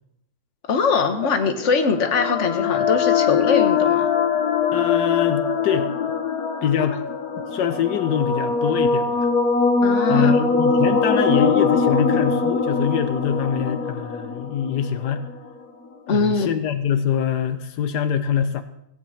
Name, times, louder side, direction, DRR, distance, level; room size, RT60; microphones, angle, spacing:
voice 1, 0.7-4.1 9.8-10.3 16.1-16.5, left 5 dB, 50° left, 6 dB, 1.5 m, -21 dB
sound 1, 1.2-15.4, left 5 dB, 65° left, 1.7 m, -22 dB
voice 2, 4.7-5.9 6.6-7.0 7.5-9.3 10.1-15.2 16.1-18.6, left 8 dB, 85° left, 10 dB, 1.4 m, -24 dB
16.5 x 6.2 x 8.5 m, 0.80 s
omnidirectional pair, 1.7 m